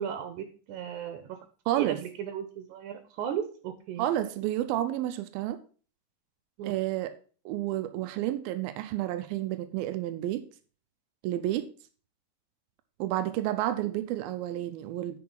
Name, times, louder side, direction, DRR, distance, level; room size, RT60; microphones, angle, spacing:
voice 1, 0.0-1.4 1.7-4.1 6.6-6.7, right 9 dB, 70° right, 2.0 m, -36 dB
voice 2, 1.7-2.0 4.0-5.6 6.6-7.1 7.5-10.5 11.2-11.7 13.0-15.2, right 13 dB, 90° right, 2.5 m, -30 dB
9.5 x 4.8 x 5.4 m
omnidirectional pair, 4.3 m